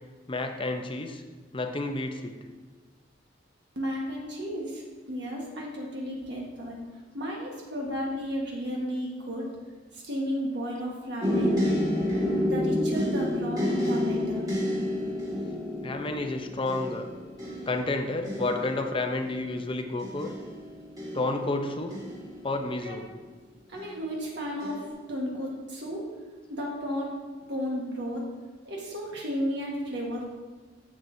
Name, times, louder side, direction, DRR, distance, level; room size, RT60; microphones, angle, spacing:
voice 1, 0.3-1.2 1.5-2.3 15.8-17.1 17.7-20.3 21.1-21.9 22.4-23.1, left 2 dB, 30° left, 5 dB, 0.6 m, -30 dB
voice 2, 3.7-6.8 7.1-9.5 9.9-11.7 12.4-14.5 22.8-23.0 23.7-26.0 26.5-27.1 27.5-28.3 28.6-30.2, equal, 65° right, -3 dB, 1.4 m, -33 dB
sound 1, 11.2-23.1 23.8-24.2 24.6-24.9, left 1 dB, 20° right, 2.0 m, -30 dB
10.5 x 7.4 x 2.7 m, 1.4 s
head